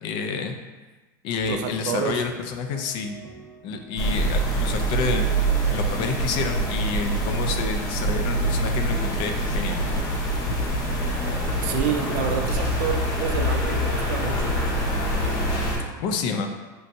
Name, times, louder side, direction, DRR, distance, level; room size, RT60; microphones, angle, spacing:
voice 1, 0.0-0.6 1.2-3.2 3.6-5.3 5.7-9.8 16.0-16.5, left 5 dB, 50° left, 5 dB, 0.4 m, -29 dB
sound 1, 1.4-15.0, equal, ahead, 0.7 m, -44 dB
voice 2, 1.5-2.2 11.6-14.6, right 8 dB, 65° right, 5 dB, 0.4 m, -29 dB
sound 2, 4.0-15.8, right 1 dB, 35° left, 0.8 m, -25 dB
4.4 x 2.6 x 2.6 m, 1.2 s
supercardioid pair, 135°, 11 cm